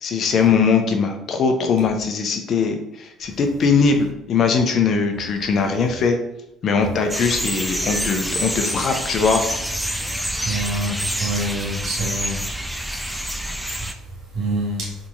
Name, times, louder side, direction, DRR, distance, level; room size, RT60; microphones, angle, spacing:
voice 1, 0.0-6.2 6.6-9.4, left 5 dB, 55° left, 5 dB, 0.6 m, -20 dB
sound 1, 7.1-13.9, equal, 5° right, 0.4 m, -27 dB
voice 2, 10.4-12.4 13.8-13.9 14.3-15.0, right 1 dB, 70° right, -3 dB, 1.3 m, -26 dB
3.7 x 2.9 x 2.4 m, 0.88 s
supercardioid pair, 70°, 0 cm